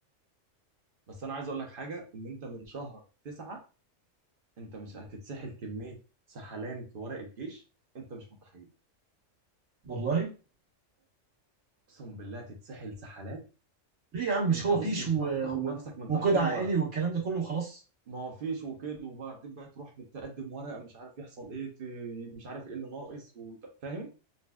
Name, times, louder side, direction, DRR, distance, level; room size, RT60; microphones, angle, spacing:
voice 1, 1.1-3.6 4.6-6.0 6.3-7.6 7.9-8.7 11.9-13.4 14.5-16.7 18.1-24.1, right 3 dB, 50° right, 1 dB, 0.9 m, -40 dB
voice 2, 9.8-10.3 14.1-15.7 16.1-17.8, right 5 dB, 90° right, -4 dB, 1.7 m, -28 dB
4.1 x 2.3 x 2.3 m, 0.34 s
omnidirectional pair, 1.3 m